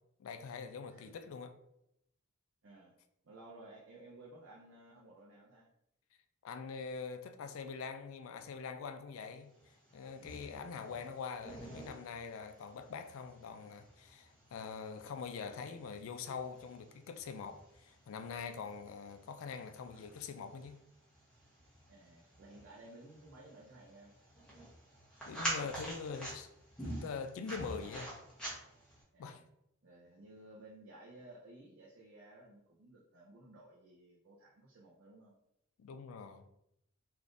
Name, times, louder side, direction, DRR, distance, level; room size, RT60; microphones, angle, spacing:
voice 1, 0.2-1.5 6.4-9.5 9.9-20.8 25.3-26.5 26.8-28.1 29.2-29.4 35.8-36.5, left 5 dB, 70° left, 0.3 m, -44 dB
voice 2, 2.6-2.9 3.2-5.7 21.9-24.1 29.1-29.5 29.8-35.4, right 2 dB, 60° right, 0.5 m, -56 dB
sound 1, 9.6-29.0, right 1 dB, 5° left, 0.8 m, -48 dB
3.5 x 2.4 x 2.5 m
head